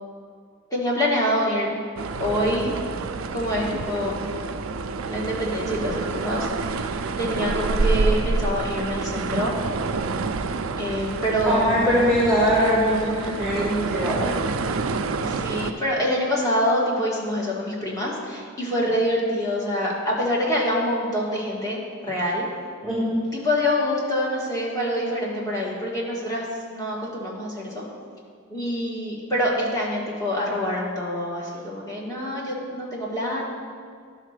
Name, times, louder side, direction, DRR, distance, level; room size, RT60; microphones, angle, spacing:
voice 1, 0.7-1.7 2.2-2.7 3.3-4.2 5.1-9.5 10.8-11.9 15.2-22.4 23.3-27.8 28.5-33.5, equal, 15° left, -4 dB, 1.6 m, -26 dB
sound 1, 2.0-15.7, right 3 dB, 85° right, 0.5 m, -28 dB
voice 2, 11.5-14.4 22.8-23.2, equal, ahead, -6 dB, 1.4 m, -22 dB
11.0 x 4.1 x 6.5 m, 2.1 s
head